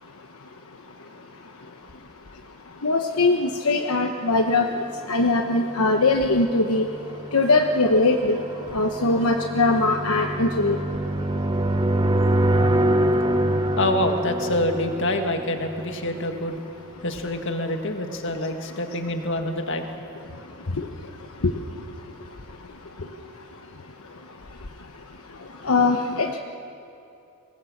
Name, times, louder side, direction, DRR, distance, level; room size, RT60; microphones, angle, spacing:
voice 1, 2.8-4.7 5.1-6.8 7.3-8.4 8.7-10.8 21.4-21.5 25.6-26.4, left 2 dB, 75° left, 4 dB, 1.1 m, -21 dB
sound 1, 5.5-16.3, right 1 dB, 20° right, 0.8 m, -25 dB
voice 2, 13.8-16.6 17.0-19.9 20.1-20.2 20.8-20.9, left 1 dB, 55° left, 5 dB, 1.9 m, -26 dB
23.5 x 19.5 x 7.3 m, 2.8 s
head